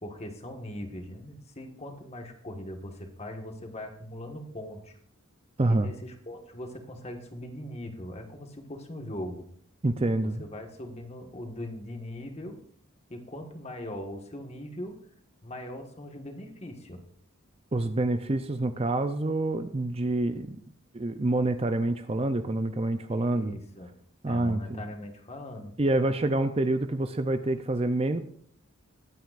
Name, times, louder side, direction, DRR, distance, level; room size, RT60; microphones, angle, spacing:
voice 1, 0.0-5.0 5.7-9.5 10.4-12.6 13.1-15.0 15.4-17.0 23.2-23.9 24.3-25.7, left 1 dB, 30° left, 4 dB, 1.6 m, -40 dB
voice 2, 5.6-5.9 9.8-10.4 17.7-20.6 20.9-23.6 24.2-24.8 25.8-28.2, right 2 dB, 25° right, 9 dB, 0.5 m, -27 dB
21.5 x 9.2 x 2.5 m, 0.62 s
head